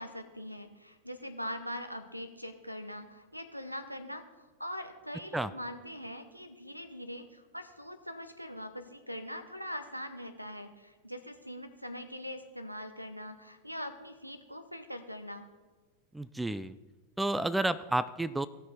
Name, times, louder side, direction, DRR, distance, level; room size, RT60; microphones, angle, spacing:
voice 1, 0.0-4.2 4.6-15.4, equal, 90° right, 9 dB, 0.8 m, -42 dB
voice 2, 16.1-16.7 17.2-18.5, right 2 dB, 5° right, 15 dB, 0.3 m, -30 dB
17.0 x 6.0 x 4.2 m, 1.3 s
figure-of-eight pair, 90°, 0 cm